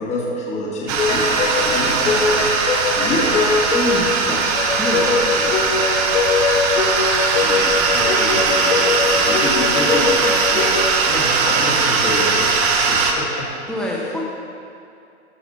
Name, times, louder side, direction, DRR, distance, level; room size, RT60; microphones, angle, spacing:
voice 1, 0.0-3.5 7.3-13.5, left 1 dB, 20° left, -3 dB, 1.6 m, -27 dB
sound 1, 0.9-13.1, right 5 dB, 30° right, 0.9 m, -19 dB
sound 2, 1.0-10.9, left 5 dB, 70° left, 1.0 m, -22 dB
voice 2, 3.7-5.9 13.7-14.2, equal, ahead, -3 dB, 1.1 m, -27 dB
13.5 x 5.7 x 4.1 m, 2.5 s
hypercardioid pair, 120°, 37 cm